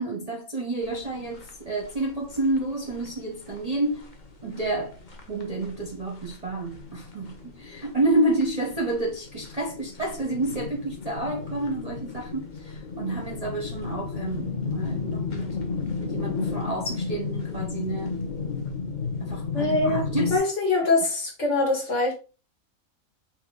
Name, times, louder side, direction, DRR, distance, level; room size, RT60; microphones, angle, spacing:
voice 1, 0.0-4.1 4.4-5.0 5.3-15.6 16.0-18.2 19.2-20.4, right 2 dB, 35° right, 0.6 m, -29 dB
sound 1, 0.8-20.4, left 5 dB, 40° left, 0.8 m, -34 dB
voice 2, 19.5-20.0 20.3-22.1, left 2 dB, 55° left, 1.7 m, -23 dB
4.4 x 2.8 x 3.7 m
omnidirectional pair, 1.5 m